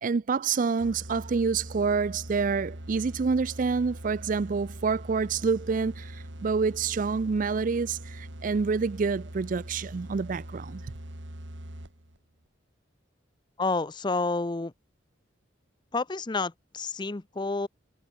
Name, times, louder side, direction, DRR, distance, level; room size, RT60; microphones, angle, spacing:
voice 1, 0.0-10.8, right 5 dB, 45° right, 0.4 m, -27 dB
sound 1, 0.8-12.2, right 1 dB, 70° right, 3.8 m, -42 dB
voice 2, 13.6-14.7 15.9-17.7, left 3 dB, 25° left, 0.6 m, -29 dB
head